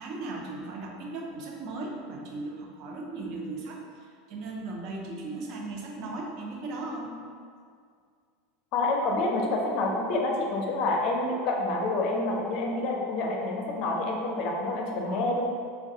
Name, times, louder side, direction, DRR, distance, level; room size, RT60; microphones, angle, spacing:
voice 1, 0.0-7.2, right 2 dB, 55° right, 0 dB, 0.5 m, -37 dB
voice 2, 8.7-15.4, left 2 dB, 50° left, 0 dB, 0.5 m, -28 dB
3.2 x 2.3 x 2.7 m, 2.2 s
hypercardioid pair, 80°, 0 cm